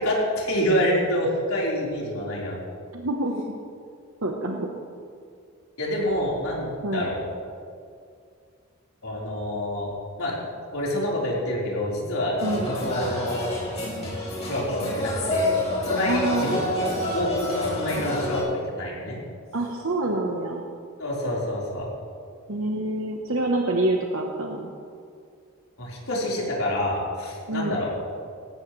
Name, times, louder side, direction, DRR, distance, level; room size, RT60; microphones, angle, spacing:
voice 1, 0.0-2.6 5.8-7.2 9.0-9.9 10.2-10.4 10.7-13.4 14.2-15.5 15.8-19.2 21.0-21.9 25.8-27.9, equal, 80° left, -5 dB, 4.3 m, -27 dB
voice 2, 2.9-3.4 4.2-4.7 6.8-7.1 12.4-12.7 16.1-16.6 19.5-20.6 22.5-24.7 27.5-27.8, right 2 dB, 70° right, 1 dB, 1.1 m, -26 dB
sound 1, 12.4-18.4, left 2 dB, 30° left, 3.7 m, -28 dB
18.0 x 15.5 x 3.3 m, 2.3 s
head